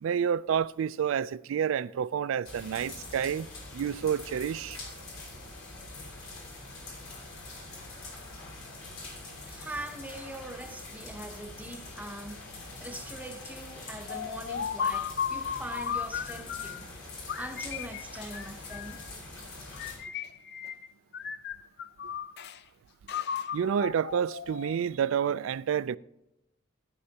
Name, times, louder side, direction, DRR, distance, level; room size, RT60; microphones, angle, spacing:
voice 1, 0.0-3.5 3.7-4.8 23.5-26.0, right 8 dB, 80° right, 0.3 m, -29 dB
sound 1, 2.5-20.0, left 2 dB, 90° left, 4.2 m, -44 dB
voice 2, 9.5-12.5 12.8-16.9 17.3-19.1, right 1 dB, 10° right, 0.7 m, -42 dB
sound 2, 14.1-16.8 17.3-19.1 19.7-20.9 21.1-22.6 23.1-24.9, left 7 dB, 55° left, 0.5 m, -35 dB
13.0 x 11.0 x 2.8 m
head